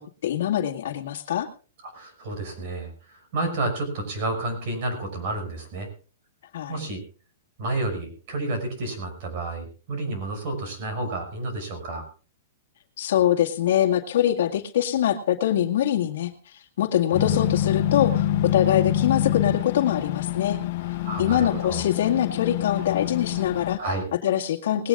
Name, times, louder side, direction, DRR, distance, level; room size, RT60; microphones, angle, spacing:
voice 1, 0.0-1.5 6.5-6.8 13.0-20.6 21.2-23.8 24.2-24.9, left 11 dB, 55° left, 3 dB, 2.0 m, -24 dB
voice 2, 1.8-5.9 6.7-7.0 7.6-12.1 17.2-17.5 20.9-21.8 23.8-24.0, right 2 dB, 40° right, 6 dB, 6.1 m, -30 dB
sound 1, 17.1-23.8, left 12 dB, 40° left, 0.8 m, -26 dB
20.0 x 17.5 x 2.5 m, 0.37 s
hypercardioid pair, 170°, 0 cm